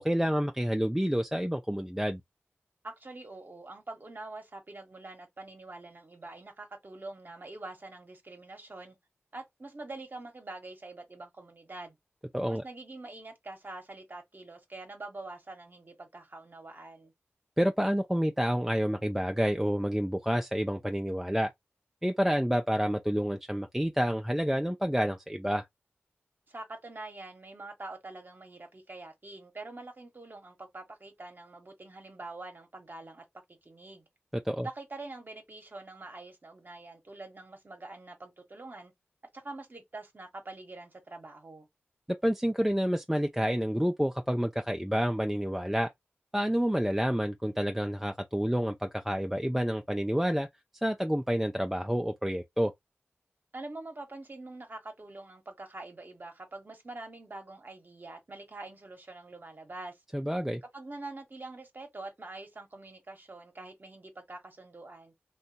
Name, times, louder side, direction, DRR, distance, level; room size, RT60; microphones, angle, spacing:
voice 1, 0.0-2.2 12.3-12.6 17.6-21.5 22.0-25.7 34.3-34.7 42.1-45.9 46.3-50.5 50.8-52.7 60.1-60.6, equal, 5° right, 0.3 m, -29 dB
voice 2, 2.8-9.0 9.3-12.0 12.5-17.1 26.5-33.2 33.6-34.0 34.6-38.9 39.3-41.7 53.5-60.0 60.7-65.1, right 2 dB, 45° right, 0.9 m, -45 dB
2.7 x 2.2 x 2.6 m
cardioid pair, 40°, 5 cm